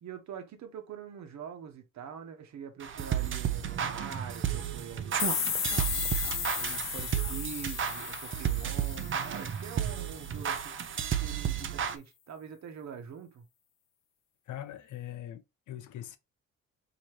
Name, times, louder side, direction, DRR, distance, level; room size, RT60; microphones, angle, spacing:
voice 1, 0.0-5.5 6.2-10.8 11.1-13.4, right 7 dB, 65° right, 1.1 m, -44 dB
sound 1, 2.8-12.0, right 9 dB, 40° right, 0.6 m, -32 dB
sound 2, 5.2-9.9, left 8 dB, 45° left, 0.6 m, -35 dB
voice 2, 14.5-16.2, left 12 dB, 75° left, 0.8 m, -42 dB
4.8 x 2.9 x 3.0 m
cardioid pair, 90°, 30 cm